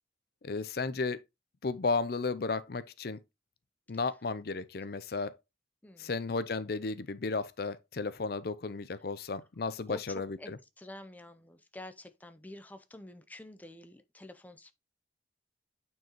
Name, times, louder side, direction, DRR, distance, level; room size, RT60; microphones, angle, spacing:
voice 1, 0.4-1.2 1.6-3.2 3.9-5.3 6.0-10.6, left 4 dB, 55° left, 0.5 m, -34 dB
voice 2, 9.9-10.5 10.8-14.7, left 1 dB, 10° left, 0.5 m, -48 dB
9.2 x 4.6 x 2.9 m
head